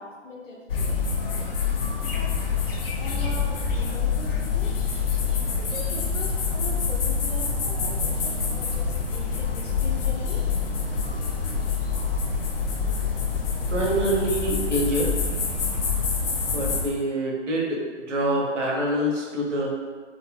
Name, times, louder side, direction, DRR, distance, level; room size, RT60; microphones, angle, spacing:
voice 1, 0.0-1.5 2.0-2.3 2.7-4.7 5.5-10.5, left 1 dB, 85° left, -1 dB, 0.7 m, -41 dB
sound 1, 0.7-16.8, left 5 dB, 50° left, 0.5 m, -26 dB
sound 2, 2.7-5.5, right 1 dB, 5° right, 0.6 m, -35 dB
voice 2, 13.7-15.1 16.5-17.8 18.1-19.7, right 1 dB, 75° right, -2 dB, 0.9 m, -25 dB
2.7 x 2.5 x 2.3 m, 1.4 s
figure-of-eight pair, 140°, 36 cm